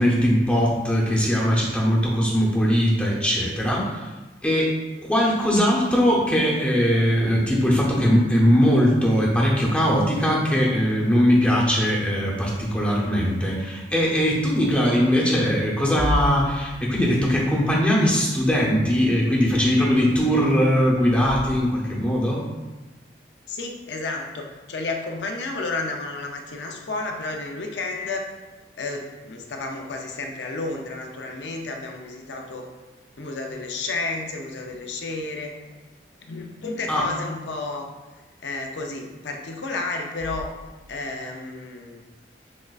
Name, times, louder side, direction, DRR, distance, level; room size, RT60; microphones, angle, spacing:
voice 1, 0.0-4.1 4.4-4.8 5.1-22.4 36.9-37.0, equal, 5° left, -5 dB, 0.6 m, -20 dB
voice 2, 23.5-28.3 28.8-32.7 33.2-35.6 36.2-37.9 38.4-40.5 40.9-42.0, left 3 dB, 75° left, 2 dB, 0.5 m, -31 dB
6.1 x 2.4 x 2.3 m, 1.2 s
head